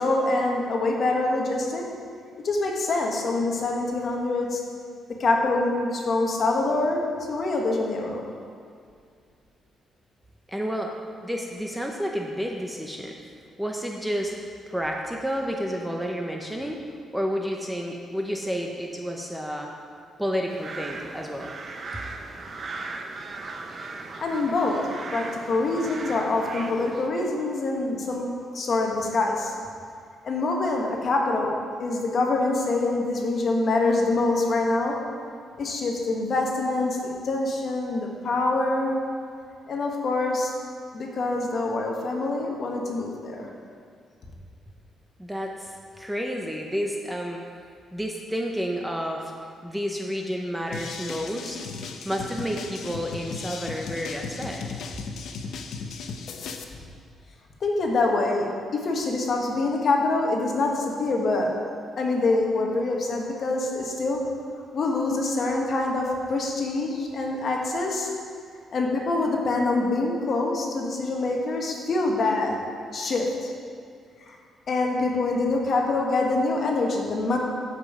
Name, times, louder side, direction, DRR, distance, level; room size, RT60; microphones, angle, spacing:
voice 1, 0.0-1.9 2.4-4.6 5.2-8.3 24.2-24.8 25.1-29.5 30.2-35.0 35.6-39.0 39.7-40.5 40.9-43.5 57.6-61.5 62.0-64.2 64.7-68.1 68.7-72.6 72.9-73.5 74.2-74.4 74.7-77.4, left 2 dB, 45° left, 0 dB, 1.4 m, -25 dB
voice 2, 10.5-10.9 11.2-13.2 13.6-14.3 14.7-16.8 17.1-19.7 20.2-21.5 45.2-47.4 47.9-49.3 49.6-51.6 52.0-54.6, equal, 5° right, 0 dB, 0.7 m, -30 dB
sound 1, 20.5-27.1, right 3 dB, 35° right, 0.7 m, -38 dB
sound 2, 50.7-56.6, left 5 dB, 70° left, 0.7 m, -36 dB
13.0 x 5.4 x 4.9 m, 2.2 s
cardioid pair, 140°, 0 cm